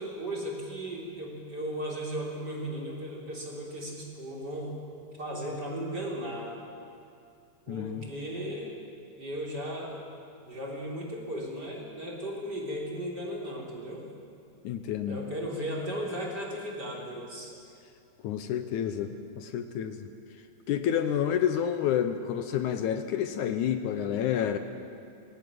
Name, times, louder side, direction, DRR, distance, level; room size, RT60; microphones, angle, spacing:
voice 1, 0.0-4.8 5.2-6.6 7.7-8.8 9.2-10.0 10.4-14.1 15.1-17.5, equal, 30° right, -3 dB, 4.4 m, -36 dB
voice 2, 7.7-8.0 14.6-15.2 18.2-20.1 20.7-24.6, left 9 dB, 75° left, 8 dB, 2.2 m, -29 dB
23.0 x 17.0 x 9.4 m, 2.5 s
omnidirectional pair, 3.7 m